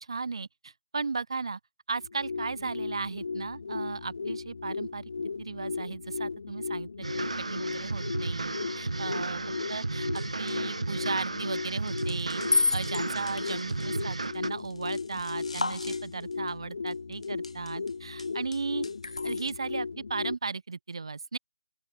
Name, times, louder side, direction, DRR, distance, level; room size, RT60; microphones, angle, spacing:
voice 1, 0.0-1.6 1.9-5.0 5.4-9.4 9.7-18.9 19.2-21.4, right 4 dB, 55° right, 2.0 m, -36 dB
sound 1, 2.0-20.3, left 4 dB, 50° left, 1.4 m, -36 dB
sound 2, 7.0-14.5, right 3 dB, 80° right, 5.3 m, -34 dB
sound 3, 10.1-10.6 11.9-16.5 16.9-17.9 18.2-19.5, left 3 dB, 90° left, 1.8 m, -33 dB
open air
figure-of-eight pair, 170°, 3 cm